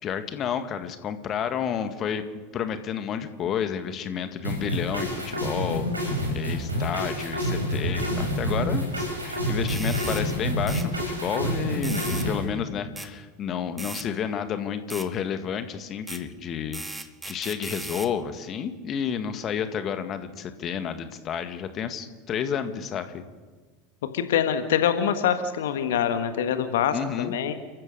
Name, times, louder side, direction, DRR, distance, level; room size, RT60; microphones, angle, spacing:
voice 1, 0.0-2.3 2.5-16.8 17.2-23.2 26.9-27.3, left 8 dB, 35° left, 9 dB, 1.8 m, -31 dB
sound 1, 4.4-12.4, equal, 85° right, 5.7 m, -28 dB
sound 2, 9.7-10.3 10.7-10.9 11.8-12.3 13.0-13.1 13.8-14.1 14.9-15.1 16.1-16.2 16.7-18.1, right 2 dB, 10° right, 1.7 m, -37 dB
voice 2, 24.1-27.5, left 9 dB, 65° left, 8 dB, 1.5 m, -24 dB
30.0 x 14.5 x 6.6 m, 1.3 s
figure-of-eight pair, 80°, 0 cm